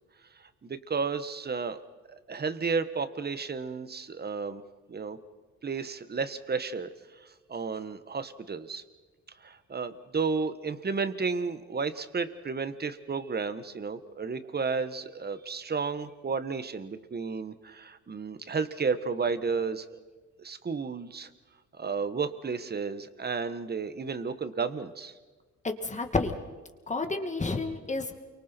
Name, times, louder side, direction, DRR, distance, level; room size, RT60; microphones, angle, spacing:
voice 1, 0.3-1.8 2.3-4.6 4.9-5.2 5.6-8.8 9.4-20.0 20.4-21.3 21.7-25.1, right 5 dB, 35° right, 11 dB, 1.5 m, -32 dB
voice 2, 25.6-26.4 26.9-28.2, left 3 dB, 25° left, 5 dB, 2.3 m, -30 dB
29.5 x 24.0 x 4.6 m, 1.3 s
cardioid pair, 90°, 30 cm